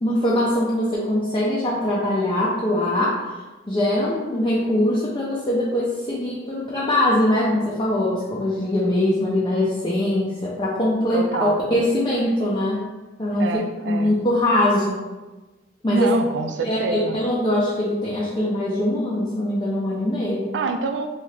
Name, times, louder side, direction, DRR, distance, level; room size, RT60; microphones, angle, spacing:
voice 1, 0.0-3.2 3.7-12.9 13.2-13.5 13.8-15.1 15.8-16.1 16.6-20.5, left 1 dB, 25° left, -6 dB, 0.4 m, -22 dB
voice 2, 11.1-11.6 13.4-14.1 15.9-17.2 20.5-21.1, right 3 dB, 75° right, 6 dB, 0.3 m, -26 dB
2.8 x 2.3 x 3.1 m, 1.2 s
head